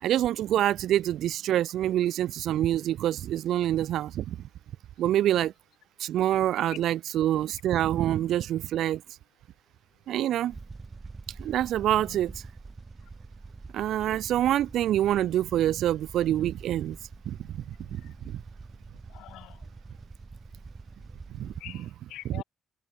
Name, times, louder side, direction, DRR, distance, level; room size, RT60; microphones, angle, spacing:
voice 1, 0.0-4.5 5.0-5.5 6.0-9.0 10.1-10.6 11.4-12.4 13.7-17.0 17.3-18.4 21.3-21.5 22.3-22.4, right 12 dB, 75° right, 0.6 m, -26 dB
sound 1, 10.5-21.6, right 3 dB, 25° right, 4.2 m, -46 dB
voice 2, 19.1-19.7 21.6-22.4, left 15 dB, 90° left, 4.6 m, -46 dB
cardioid pair, 95°, 0 cm